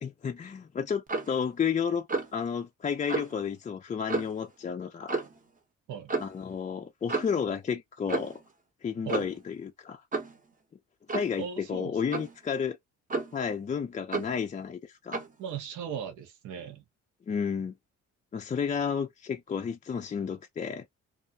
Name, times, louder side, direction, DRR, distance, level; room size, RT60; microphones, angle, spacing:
voice 1, 0.0-2.1 2.3-5.2 6.2-8.4 8.8-10.0 11.1-12.8 13.3-15.2 17.3-17.7 18.3-20.9, left 6 dB, 25° left, 0.4 m, -32 dB
Clock, 1.1-1.4 2.1-2.4 3.1-3.3 4.1-4.4 5.1-5.4 6.1-6.3 7.1-7.4 8.1-8.4 9.1-9.4 10.1-10.4 11.1-11.4 12.1-12.4 13.1-13.5 14.1-14.4 15.1-15.4, right 3 dB, 25° right, 0.8 m, -32 dB
voice 2, 11.4-12.2 15.4-16.8, right 7 dB, 80° right, 0.8 m, -38 dB
2.4 x 2.1 x 2.5 m
cardioid pair, 90°, 30 cm